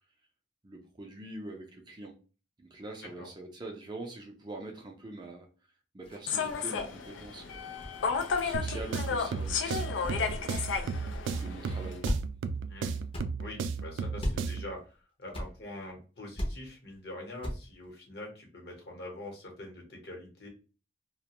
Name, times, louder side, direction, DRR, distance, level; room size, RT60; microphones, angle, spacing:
voice 1, 0.6-2.1 2.6-5.5 5.9-7.6 8.4-10.7 11.4-12.0, right 2 dB, 25° right, 2 dB, 0.4 m, -44 dB
sound 1, 6.0-11.6 12.0-12.2 12.5-12.6 13.1-13.2 14.2-14.3 15.3-15.5 15.8-15.9 16.4-16.5 16.9-17.0 17.4-17.6 17.8-17.9, equal, 30° left, 0.6 m, -38 dB
Human voice / Subway metro underground, 6.3-12.0, left 6 dB, 90° left, 0.4 m, -33 dB
sound 2, 8.5-14.8, right 5 dB, 90° right, 0.3 m, -35 dB
voice 2, 12.7-13.0 13.4-20.5, left 1 dB, 60° left, 1 dB, 0.9 m, -44 dB
2.4 x 2.1 x 2.9 m, 0.35 s
head